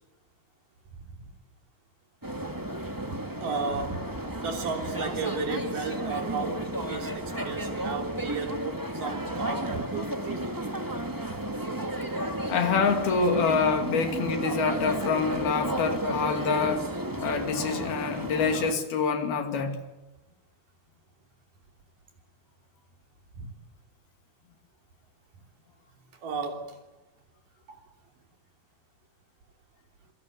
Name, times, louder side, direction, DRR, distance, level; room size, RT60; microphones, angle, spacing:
sound 1, 2.2-18.7, right 1 dB, 10° right, 1.0 m, -33 dB
voice 1, 3.4-4.0 4.4-10.4 11.3-11.4 23.4-23.5 26.1-26.8 27.7-27.8, right 4 dB, 60° right, 4 dB, 4.8 m, -34 dB
voice 2, 12.5-19.8, left 5 dB, 90° left, 5 dB, 4.5 m, -26 dB
26.5 x 23.0 x 8.2 m, 1.1 s
omnidirectional pair, 4.2 m